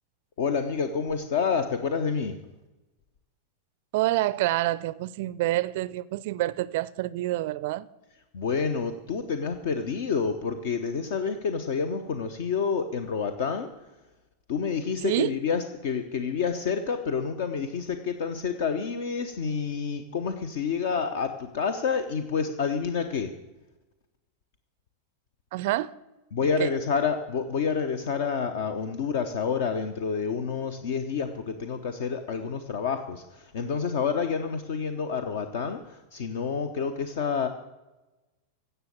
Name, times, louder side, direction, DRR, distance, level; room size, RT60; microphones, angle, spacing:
voice 1, 0.4-2.3 8.3-13.7 14.5-23.3 26.3-37.5, left 5 dB, 55° left, 0.9 m, -28 dB
voice 2, 3.9-7.9 15.0-15.3 25.5-25.9 26.6-26.7, right 17 dB, 50° right, 0.4 m, -27 dB
16.0 x 6.8 x 8.8 m
figure-of-eight pair, 90°, 0 cm